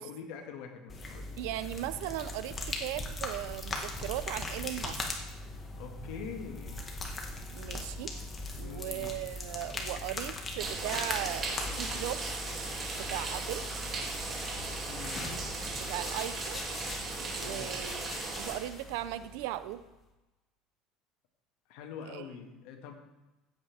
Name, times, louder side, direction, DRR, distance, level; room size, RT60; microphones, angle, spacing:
voice 1, 0.0-1.4 5.8-6.9 8.6-9.2 14.9-15.4 17.4-17.8 21.7-22.9, left 6 dB, 75° left, 3 dB, 1.8 m, -44 dB
Very Creamy liquid rubbed between hands and over legs., 0.9-19.8, left 2 dB, 25° left, 1.6 m, -40 dB
voice 2, 1.4-5.0 7.5-12.4 12.9-13.6 15.1-16.6 17.2-19.8 22.1-22.3, right 14 dB, 80° right, 14 dB, 0.6 m, -38 dB
sound 1, 10.6-18.6, right 3 dB, 35° right, 2.6 m, -37 dB
15.5 x 8.1 x 3.5 m, 1.1 s
supercardioid pair, 120°, 0 cm